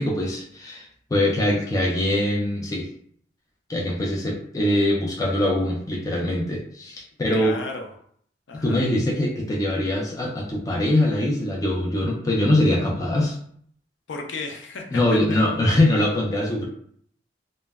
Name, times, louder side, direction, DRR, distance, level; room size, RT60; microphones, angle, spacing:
voice 1, 0.0-2.9 3.7-7.6 8.6-13.4 14.9-16.7, left 1 dB, 20° left, -2 dB, 0.4 m, -23 dB
voice 2, 7.3-7.9 8.5-8.8 14.1-15.2, left 3 dB, 80° left, 3 dB, 0.5 m, -34 dB
2.1 x 2.0 x 3.4 m, 0.63 s
head